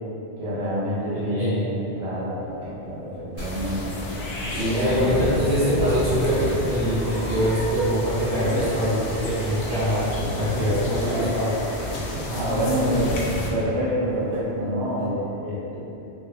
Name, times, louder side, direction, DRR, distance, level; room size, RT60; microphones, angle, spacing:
voice 1, 0.4-3.9 4.5-5.0 10.4-11.1 11.9-15.8, equal, 35° right, -9 dB, 0.6 m, -27 dB
voice 2, 1.1-1.6 4.6-11.6 12.7-12.9, equal, 60° right, -16 dB, 1.5 m, -24 dB
sound 1, 2.2-13.7 14.1-14.6 15.0-15.1, left 1 dB, 80° right, 1.3 m, -42 dB
sound 2, 3.4-13.5, left 1 dB, 80° left, 0.8 m, -30 dB
3.4 x 2.2 x 2.7 m, 2.8 s
omnidirectional pair, 1.1 m